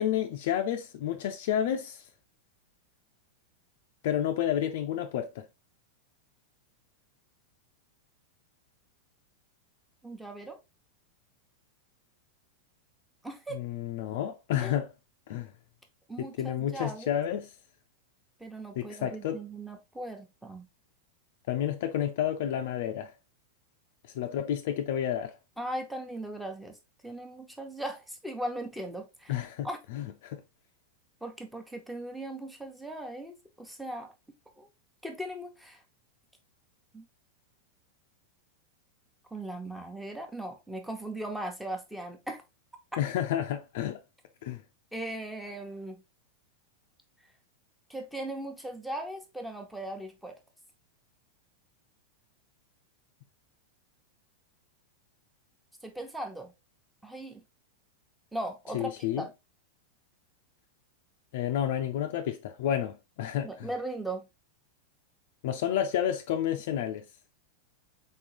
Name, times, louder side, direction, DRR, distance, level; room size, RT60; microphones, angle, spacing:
voice 1, 0.0-2.0 4.0-5.4 13.5-14.9 15.3-15.5 16.4-17.5 18.8-19.4 21.5-23.1 24.1-25.3 29.3-30.4 43.0-44.0 44.4-44.6 58.7-59.3 61.3-63.7 65.4-67.0, left 10 dB, 60° left, 0.5 m, -30 dB
voice 2, 10.0-10.6 13.2-13.6 14.6-14.7 16.1-17.1 18.4-20.6 25.6-26.8 27.0-29.8 31.2-34.1 34.6-34.7 35.0-35.8 36.9-37.0 39.3-42.4 44.9-46.0 47.9-50.4 55.8-56.5 57.0-57.4 58.3-59.3 63.4-64.3, right 1 dB, 5° right, 1.1 m, -38 dB
3.9 x 3.7 x 2.9 m
figure-of-eight pair, 95°, 0 cm